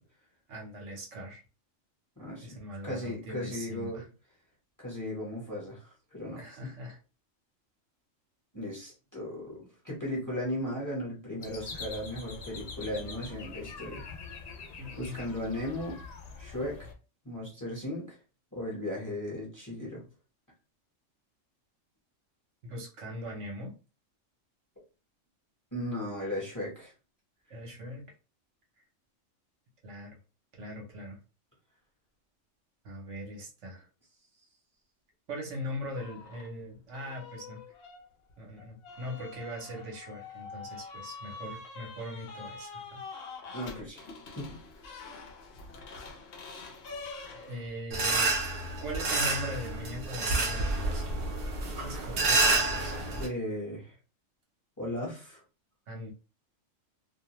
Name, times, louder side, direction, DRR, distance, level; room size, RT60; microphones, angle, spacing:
voice 1, 0.5-1.4 2.4-4.0 6.3-7.0 14.8-15.2 22.6-23.7 27.5-28.0 29.8-30.2 30.6-31.2 32.8-33.9 35.3-37.6 38.4-43.0 47.3-48.3 48.8-51.2 51.8-53.2 55.9-56.1, equal, 70° right, 0 dB, 1.0 m, -41 dB
voice 2, 2.2-4.0 4.8-6.7 8.5-14.1 15.0-16.0 16.4-16.9 17.2-18.2 18.5-20.0 25.7-26.9 43.5-44.0 44.3-44.6 53.2-53.9 54.8-55.4, left 1 dB, 15° left, -4 dB, 0.8 m, -36 dB
sound 1, 11.4-16.9, left 4 dB, 75° left, 0.3 m, -44 dB
sound 2, 35.9-36.5 36.9-47.8, left 4 dB, 60° left, 0.7 m, -46 dB
sound 3, 47.9-53.3, right 2 dB, 50° right, 0.7 m, -29 dB
2.4 x 2.1 x 2.9 m, 0.33 s
omnidirectional pair, 1.3 m